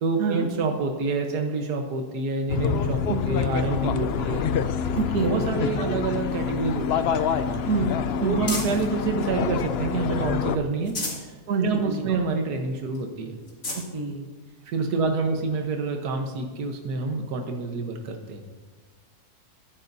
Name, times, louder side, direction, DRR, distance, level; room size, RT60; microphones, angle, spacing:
voice 1, 0.0-4.5 5.2-7.6 8.2-13.4 14.7-18.4, right 4 dB, 80° right, 3 dB, 1.6 m, -28 dB
sound 1, 2.5-10.6, left 7 dB, 75° left, 0.5 m, -26 dB
voice 2, 4.9-5.3 7.6-7.9 8.2-8.4 11.5-12.0 13.7-14.2 14.9-15.3, right 4 dB, 65° right, 3 dB, 1.6 m, -27 dB
sound 2, 6.3-8.9 9.5-10.2 10.6-11.3 11.8-11.9 12.2-12.3 12.9-13.0 13.4-13.9 14.7-14.8 16.6-16.7, left 2 dB, 60° left, 2.9 m, -36 dB
22.5 x 10.0 x 2.7 m, 1.3 s
omnidirectional pair, 1.7 m